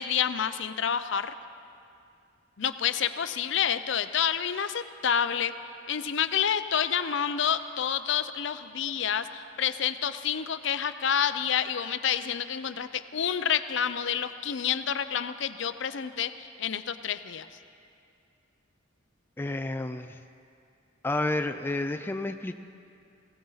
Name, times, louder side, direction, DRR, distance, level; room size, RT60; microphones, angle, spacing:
voice 1, 0.0-1.3 2.6-5.5 5.9-17.5, left 8 dB, 60° left, 11 dB, 0.5 m, -28 dB
voice 2, 19.4-20.2 21.0-22.6, left 2 dB, 10° left, 7 dB, 0.3 m, -30 dB
19.5 x 16.5 x 4.0 m, 2.5 s
head